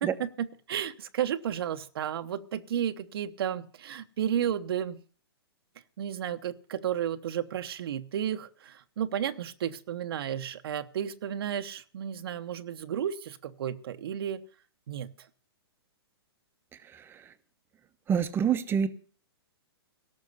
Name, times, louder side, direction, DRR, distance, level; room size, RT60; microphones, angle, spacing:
voice 1, 0.0-5.0 6.0-14.4 14.9-15.1, right 9 dB, 65° right, 8 dB, 1.0 m, -32 dB
voice 2, 18.1-18.9, right 7 dB, 15° right, 10 dB, 1.0 m, -27 dB
17.0 x 6.5 x 8.0 m, 0.42 s
hypercardioid pair, 135°, 14 cm